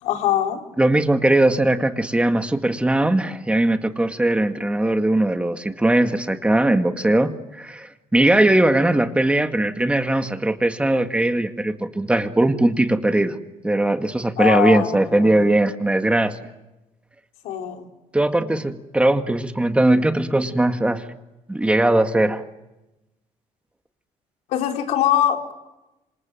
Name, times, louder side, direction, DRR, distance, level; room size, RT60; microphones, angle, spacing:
voice 1, 0.0-0.6 14.4-15.3 17.4-17.9 24.5-25.5, left 11 dB, 85° left, 3 dB, 4.2 m, -22 dB
voice 2, 0.8-13.4 13.6-16.4 18.1-21.1 21.5-22.4, right 1 dB, 10° right, 7 dB, 2.0 m, -19 dB
27.0 x 26.5 x 7.7 m, 0.98 s
cardioid pair, 100°, 11 cm